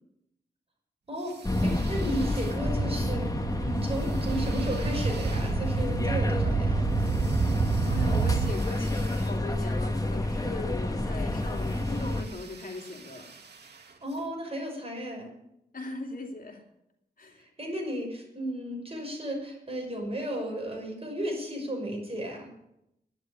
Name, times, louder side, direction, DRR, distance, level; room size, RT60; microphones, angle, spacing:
voice 1, 1.1-3.3 3.6-6.9 14.0-15.3 17.3-22.5, right 1 dB, 35° right, 0 dB, 5.8 m, -34 dB
sound 1, 1.1-3.0 3.7-10.1 11.3-14.3, right 5 dB, 85° right, 1.6 m, -49 dB
sound 2, 1.4-12.2, left 1 dB, 20° left, 1.6 m, -29 dB
sound 3, 2.6-8.5, right 6 dB, 60° right, 0.7 m, -29 dB
voice 2, 7.9-13.3 15.7-16.6 17.2-17.4, left 2 dB, 55° left, 2 dB, 2.8 m, -39 dB
11.5 x 10.5 x 8.6 m, 0.81 s
wide cardioid pair, 75°, 17 cm